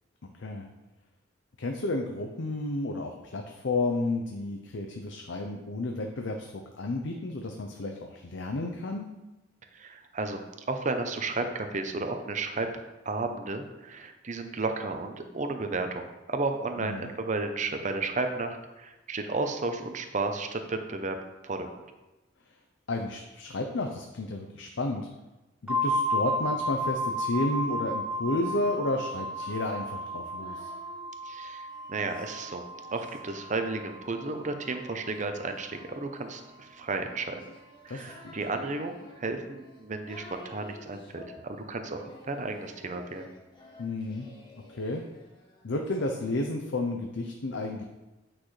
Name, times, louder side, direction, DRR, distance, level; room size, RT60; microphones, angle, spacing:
voice 1, 1.6-9.1 16.8-17.1 22.9-25.1 25.6-30.7 37.9-38.4 43.8-44.3 44.7-45.0 45.6-47.8, left 2 dB, 70° left, 3 dB, 0.6 m, -32 dB
voice 2, 9.7-12.7 13.1-21.2 21.4-21.7 31.2-32.6 32.9-37.5 37.8-43.3, right 3 dB, 40° right, 6 dB, 0.7 m, -33 dB
sound 1, 25.7-35.3, equal, 5° right, 0.4 m, -33 dB
Singing, 28.1-31.1 31.7-46.2, left 2 dB, 25° left, 1.1 m, -53 dB
8.6 x 6.0 x 3.2 m, 1.1 s
head